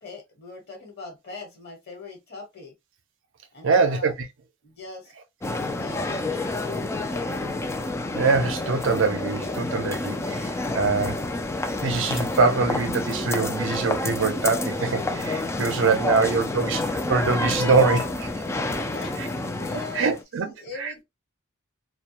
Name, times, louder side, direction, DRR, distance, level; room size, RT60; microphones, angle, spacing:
voice 1, 0.0-2.7 3.5-4.1 4.6-5.1 5.7-7.5 15.7-16.2 18.7-20.1 20.4-21.0, left 3 dB, 50° left, 1.2 m, -41 dB
voice 2, 3.6-4.3 8.1-11.2 11.8-18.3 20.0-20.5 20.8-21.0, right 4 dB, 65° right, 0.5 m, -23 dB
sound 1, 5.4-20.2, left 2 dB, 15° left, 0.3 m, -29 dB
2.2 x 2.1 x 2.7 m
head